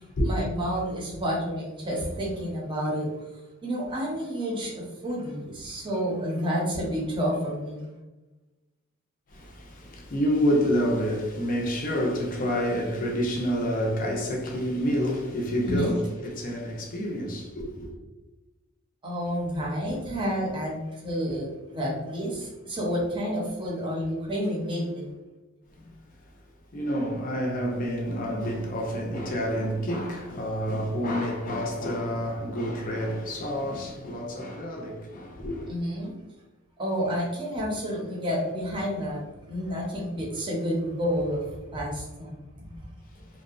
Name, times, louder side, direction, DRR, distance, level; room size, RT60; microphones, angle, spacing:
voice 1, 0.0-3.1 3.6-7.9 15.6-16.0 19.0-25.1 35.7-36.1 36.8-39.2 39.5-42.9, equal, 25° right, 0.7 m, -30 dB
voice 2, 9.3-17.9 26.7-35.7 43.2-43.3, equal, 40° left, 0.5 m, -28 dB
2.7 x 2.1 x 2.4 m
head